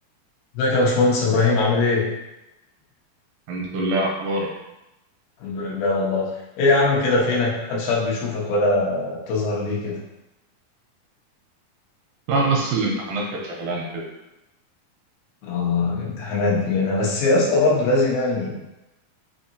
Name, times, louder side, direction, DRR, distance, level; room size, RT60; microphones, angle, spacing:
voice 1, 0.5-2.0 5.4-6.2 6.6-10.0 15.4-18.5, left 3 dB, 90° left, -5 dB, 3.0 m, -21 dB
voice 2, 3.5-4.5 12.3-13.2 13.6-14.0, right 2 dB, 80° right, -1 dB, 2.2 m, -23 dB
6.4 x 2.9 x 2.6 m, 0.94 s
omnidirectional pair, 4.3 m